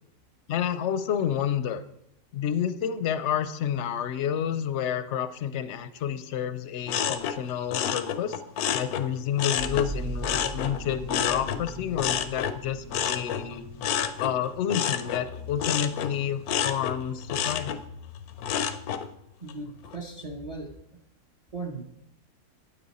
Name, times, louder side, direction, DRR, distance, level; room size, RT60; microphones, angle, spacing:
voice 1, 0.5-1.8 2.3-8.4 8.7-13.7 14.2-17.8, left 9 dB, 65° left, 12 dB, 0.8 m, -29 dB
sound 1, 6.9-9.9 10.2-19.1 19.5-20.0, left 9 dB, 85° left, 1.1 m, -30 dB
sound 2, 9.6-17.1 17.8-17.9, right 1 dB, 55° right, 2.0 m, -40 dB
voice 2, 19.4-20.7 21.5-21.8, right 3 dB, 30° right, 3 dB, 0.7 m, -37 dB
9.1 x 8.5 x 4.1 m, 0.78 s
omnidirectional pair, 1.5 m